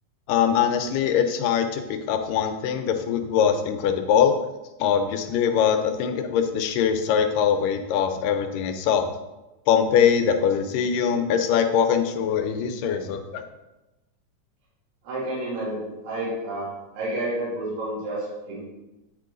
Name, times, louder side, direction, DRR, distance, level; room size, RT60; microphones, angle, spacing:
voice 1, 0.3-4.3 4.8-9.1 9.7-13.5, left 8 dB, 85° left, 6 dB, 2.2 m, -22 dB
voice 2, 15.1-16.7 16.9-18.7, right 1 dB, 85° right, -6 dB, 3.5 m, -30 dB
8.8 x 3.8 x 3.7 m, 1.0 s
omnidirectional pair, 3.9 m